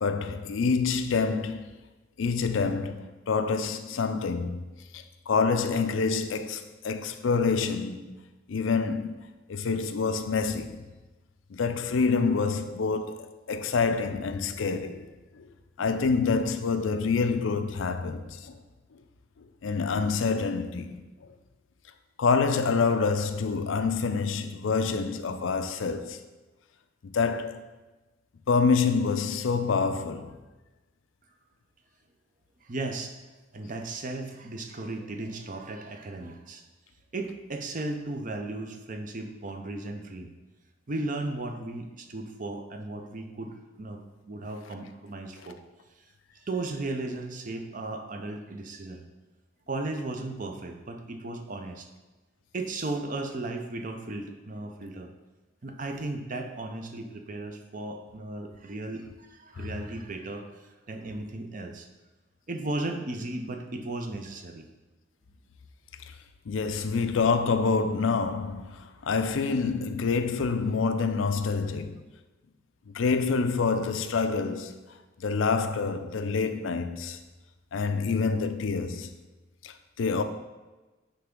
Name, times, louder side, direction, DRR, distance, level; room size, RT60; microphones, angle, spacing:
voice 1, 0.0-1.7 2.2-4.6 4.9-8.2 8.5-9.2 9.5-10.8 11.5-15.5 15.8-18.6 19.6-21.0 22.2-26.2 27.0-27.6 28.5-30.4 59.6-59.8 66.5-72.0 72.9-74.9 75.2-77.2 77.7-79.1 79.6-80.2, left 4 dB, 80° left, 0.5 m, -27 dB
voice 2, 32.6-33.1 33.5-36.6 37.1-40.3 40.9-44.0 44.2-45.6 46.3-49.0 49.7-51.9 52.5-55.1 55.6-61.9 62.5-64.7, right 2 dB, 40° right, 0.6 m, -35 dB
9.2 x 3.4 x 3.7 m
head